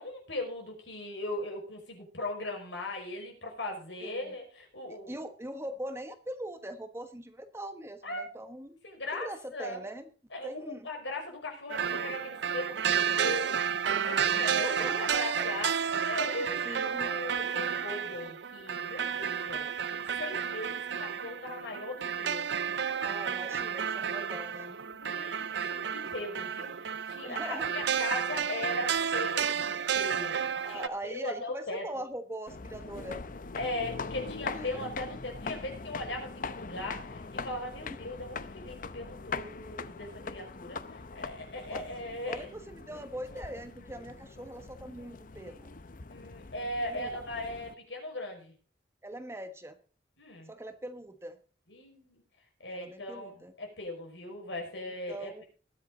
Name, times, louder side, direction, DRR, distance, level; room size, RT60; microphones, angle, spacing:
voice 1, 0.0-5.3 8.0-8.3 8.8-9.8 10.3-22.5 24.9-32.0 33.5-42.5 46.1-48.5 50.2-50.5 51.7-52.2 52.6-55.4, left 2 dB, 80° left, 1 dB, 5.5 m, -39 dB
voice 2, 4.0-4.3 4.9-8.8 9.1-10.1 10.4-10.9 13.8-15.5 16.3-17.1 23.0-24.8 27.2-27.7 30.6-33.2 34.5-34.9 37.8-38.0 41.7-41.8 42.3-45.7 46.9-47.5 49.0-49.8 50.5-51.4 52.7-53.5 55.1-55.4, right 1 dB, 15° right, 8 dB, 1.1 m, -42 dB
sound 1, 11.7-30.9, right 7 dB, 70° right, 0.6 m, -31 dB
sound 2, 32.5-47.7, left 4 dB, 50° left, 0.7 m, -42 dB
20.5 x 8.2 x 3.9 m, 0.37 s
head